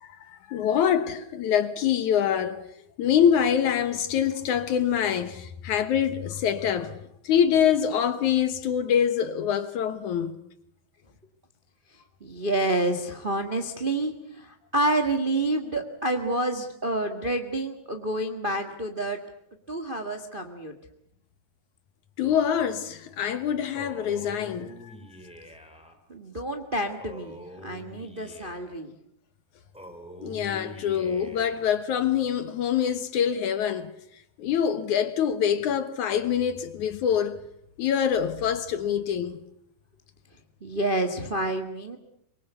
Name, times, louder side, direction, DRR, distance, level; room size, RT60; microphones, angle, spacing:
voice 1, 0.0-2.6 3.0-7.0 7.2-10.3 22.2-24.9 30.2-33.9 34.4-37.4 37.8-39.4, left 8 dB, 65° left, 2.2 m, -25 dB
voice 2, 12.2-19.2 19.7-20.7 26.1-28.9 40.6-42.0, right 1 dB, 55° right, 0.5 m, -28 dB
Male speech man speaking, 23.7-25.9 27.0-28.8 29.7-31.7, equal, ahead, 3.1 m, -44 dB
24.5 x 23.5 x 8.2 m
omnidirectional pair, 4.4 m